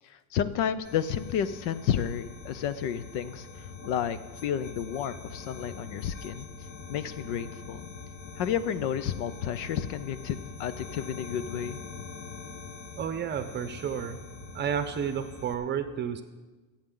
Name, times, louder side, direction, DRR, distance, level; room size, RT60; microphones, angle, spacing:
voice 1, 0.0-6.5 6.9-7.9 8.4-11.8, left 9 dB, 60° left, 14 dB, 0.8 m, -31 dB
sound 1, 0.8-15.5, left 4 dB, 40° left, 1.5 m, -43 dB
voice 2, 13.0-14.2 14.5-16.2, right 8 dB, 25° right, 9 dB, 0.8 m, -31 dB
25.5 x 8.8 x 3.9 m, 1.3 s
cardioid pair, 155°, 44 cm